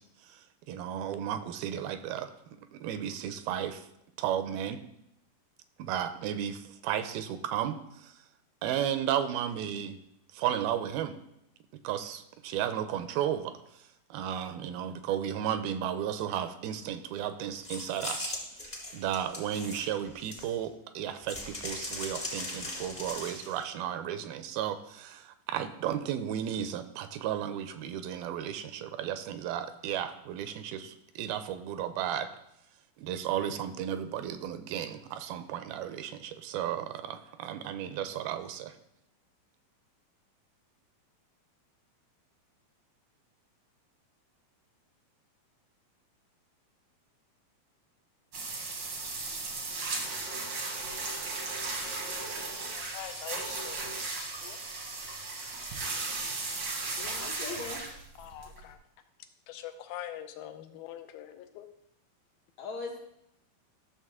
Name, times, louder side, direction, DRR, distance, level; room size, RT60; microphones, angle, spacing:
voice 1, 0.2-2.3 2.7-3.9 4.2-4.8 5.8-8.1 8.6-10.0 10.3-11.1 11.8-32.3 33.0-38.7, right 10 dB, 85° right, 10 dB, 2.4 m, -34 dB
sound 1, 17.6-20.7 21.3-23.6, left 1 dB, 25° left, 0.8 m, -39 dB
sound 2, 48.3-58.7, right 3 dB, 65° right, 1.1 m, -36 dB
voice 2, 52.7-54.6 56.9-57.0 58.2-58.8 59.5-61.7, left 12 dB, 85° left, 8 dB, 2.5 m, -44 dB
voice 3, 57.0-57.8 62.6-63.0, left 3 dB, 65° left, 0 dB, 2.0 m, -39 dB
13.0 x 6.6 x 3.6 m, 0.80 s
omnidirectional pair, 4.4 m